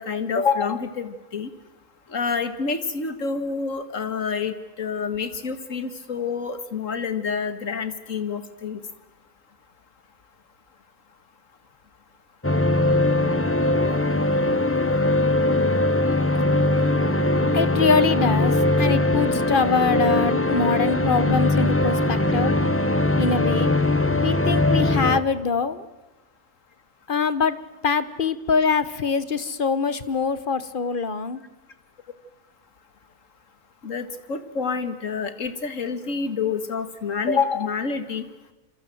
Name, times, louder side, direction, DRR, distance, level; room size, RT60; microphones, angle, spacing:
voice 1, 0.0-1.5 2.1-8.8 33.8-38.3, left 5 dB, 60° left, 10 dB, 2.2 m, -27 dB
sound 1, 12.4-25.2, left 2 dB, 10° left, 0.9 m, -21 dB
voice 2, 17.5-22.5 23.2-23.7 24.2-25.9 27.1-27.6 27.8-31.4, left 5 dB, 40° left, 14 dB, 1.2 m, -24 dB
27.0 x 25.5 x 7.8 m, 1.1 s
omnidirectional pair, 1.5 m